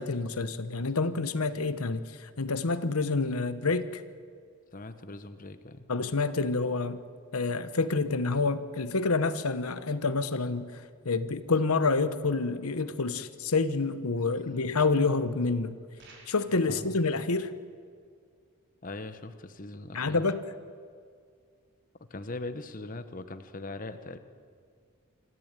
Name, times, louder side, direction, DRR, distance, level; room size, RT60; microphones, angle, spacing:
voice 1, 0.0-4.0 5.9-7.0 7.3-15.8 16.3-17.5 19.9-20.4, left 3 dB, 85° left, 12 dB, 1.1 m, -28 dB
voice 2, 4.7-5.8 16.7-17.0 18.8-20.3 22.1-24.2, left 2 dB, 40° left, 10 dB, 1.1 m, -40 dB
sound 1, 16.0-16.7, right 3 dB, 55° right, 4.2 m, -54 dB
25.5 x 14.0 x 9.0 m, 2.2 s
head